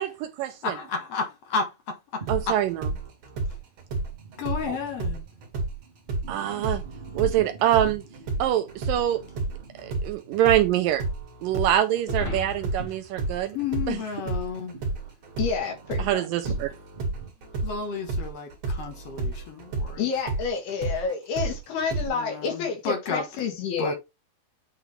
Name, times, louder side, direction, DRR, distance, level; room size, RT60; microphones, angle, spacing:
voice 1, 0.0-0.7 2.3-2.7 4.7-4.8 6.3-6.8 7.1-8.0 8.4-9.2 9.8-11.0 11.4-13.6 13.9-14.0 16.0-16.7, right 12 dB, 80° right, 2.1 m, -24 dB
voice 2, 0.6-2.6 4.4-5.3 13.5-14.7 17.6-20.1 22.0-23.3 23.8-23.9, left 5 dB, 65° left, 1.6 m, -32 dB
sound 1, 2.2-17.3, right 4 dB, 30° right, 0.9 m, -46 dB
sound 2, 2.3-5.8 6.1-14.0 14.3-22.1, right 3 dB, 50° right, 2.8 m, -31 dB
sound 3, 12.0-14.6, left 3 dB, 30° left, 2.2 m, -38 dB
voice 3, 15.4-16.2 20.0-24.0, left 6 dB, 90° left, 3.9 m, -29 dB
9.2 x 3.9 x 3.3 m
omnidirectional pair, 4.3 m